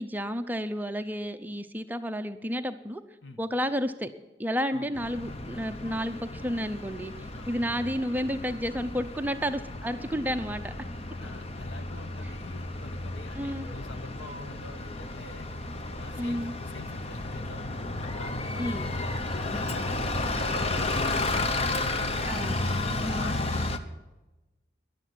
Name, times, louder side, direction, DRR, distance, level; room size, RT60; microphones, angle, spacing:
voice 1, 0.0-3.0 3.4-4.1 4.4-10.7 13.4-13.7 16.2-16.5 18.6-18.9 22.3-22.6 23.0-23.4, equal, 10° right, 8 dB, 0.6 m, -31 dB
Bus, 4.9-23.8, left 2 dB, 35° left, 0.9 m, -33 dB
voice 2, 11.2-15.4 16.0-17.9 18.1-21.5 21.8-22.3 22.9-23.8, left 2 dB, 80° left, 10 dB, 1.3 m, -46 dB
13.5 x 11.0 x 9.4 m, 1.1 s
head